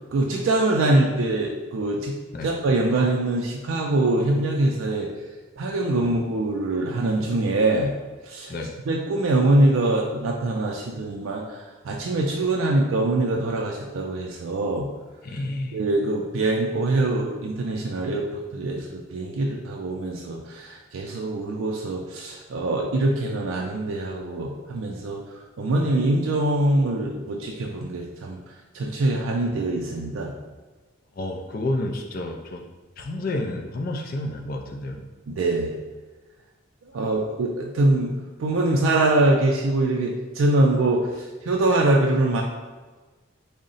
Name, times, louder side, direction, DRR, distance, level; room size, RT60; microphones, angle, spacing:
voice 1, 0.1-2.2 2.4-5.1 5.6-7.9 8.2-8.5 8.9-14.9 15.7-25.2 25.6-28.4 28.7-30.3 35.3-35.7 36.9-38.1 38.4-42.4, right 2 dB, 80° right, -1 dB, 0.4 m, -23 dB
voice 2, 15.2-15.8 31.2-32.6 33.0-35.0 36.9-37.1, left 1 dB, 45° left, 2 dB, 0.3 m, -30 dB
3.7 x 2.1 x 3.9 m, 1.3 s
head